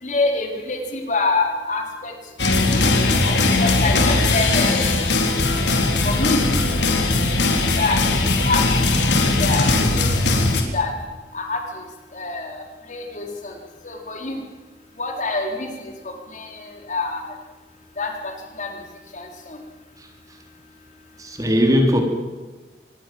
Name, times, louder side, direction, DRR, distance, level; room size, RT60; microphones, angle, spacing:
voice 1, 0.0-2.1 2.5-2.8 3.4-4.9 6.0-6.6 7.2-8.6 8.9-10.9 11.3-11.8 12.1-13.6 13.8-14.4 15.0-17.3 18.0-18.3 18.6-18.8 19.1-19.6, left 3 dB, 45° left, 3 dB, 4.0 m, -27 dB
sound 1, 2.4-10.6, left 2 dB, 85° left, 3.8 m, -19 dB
voice 2, 21.2-22.0, equal, 20° right, 3 dB, 3.4 m, -20 dB
25.0 x 21.0 x 7.7 m, 1.2 s
head